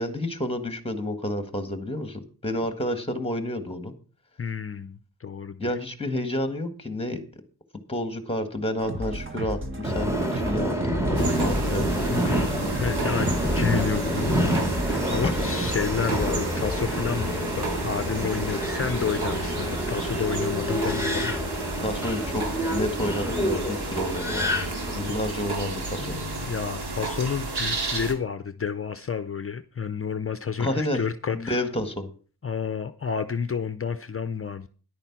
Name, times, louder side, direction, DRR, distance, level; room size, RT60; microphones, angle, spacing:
voice 1, 0.0-3.9 5.6-7.2 7.9-12.2 21.8-24.6 24.9-26.1 30.6-31.0 31.3-32.1, left 1 dB, 15° left, 1.7 m, -30 dB
voice 2, 4.4-5.7 12.1-21.4 26.0-31.6 32.4-34.7, left 6 dB, 35° left, 0.6 m, -30 dB
sound 1, 8.8-17.0, right 1 dB, 30° right, 1.5 m, -33 dB
Subway metro underground, 9.8-25.1, equal, 5° right, 2.4 m, -28 dB
sound 2, 11.1-28.1, right 3 dB, 90° right, 2.5 m, -33 dB
11.0 x 8.8 x 5.9 m
wide cardioid pair, 120°, 38 cm